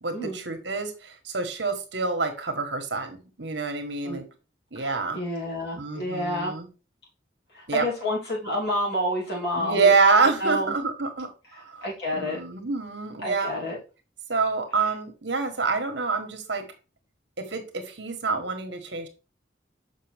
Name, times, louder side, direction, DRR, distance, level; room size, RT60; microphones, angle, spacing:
voice 1, 0.0-4.2 4.7-5.2 5.8-6.7 7.7-7.9 9.6-11.3 11.7-11.8 12.1-13.6 14.3-16.6 17.4-19.1, right 4 dB, 70° right, 6 dB, 1.4 m, -26 dB
voice 2, 4.7-6.6 7.5-9.9 10.2-10.7 11.5-12.4 13.2-13.8 14.8-14.9, left 1 dB, 55° left, -4 dB, 3.3 m, -29 dB
6.7 x 5.6 x 3.5 m, 0.32 s
head